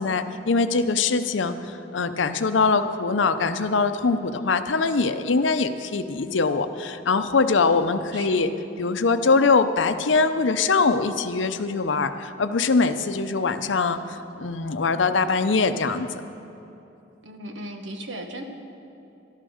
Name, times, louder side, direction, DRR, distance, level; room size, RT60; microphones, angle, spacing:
voice 1, 0.0-8.5 8.8-16.1, left 4 dB, 80° left, 10 dB, 0.6 m, -22 dB
voice 2, 8.1-8.5 17.2-18.4, right 1 dB, 80° right, 4 dB, 1.4 m, -36 dB
12.5 x 11.5 x 6.4 m, 2.9 s
head